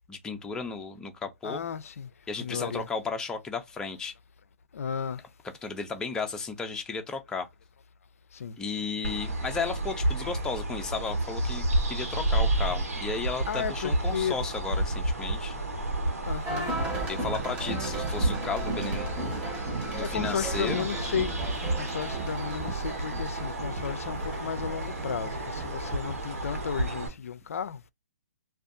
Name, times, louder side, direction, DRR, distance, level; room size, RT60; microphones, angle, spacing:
voice 1, 0.1-1.6 2.3-4.1 5.6-7.5 8.6-15.5 17.1-19.1 19.9-20.9, left 4 dB, 10° left, 0.4 m, -34 dB
voice 2, 1.4-2.1 2.4-2.9 4.7-5.2 8.3-8.6 13.5-14.4 16.3-16.7 20.0-27.8, left 7 dB, 70° left, 0.4 m, -34 dB
sound 1, 9.0-27.1, right 1 dB, 85° right, 1.1 m, -31 dB
sound 2, 16.5-27.1, right 2 dB, 15° right, 0.9 m, -36 dB
2.5 x 2.2 x 2.5 m
hypercardioid pair, 135°, 8 cm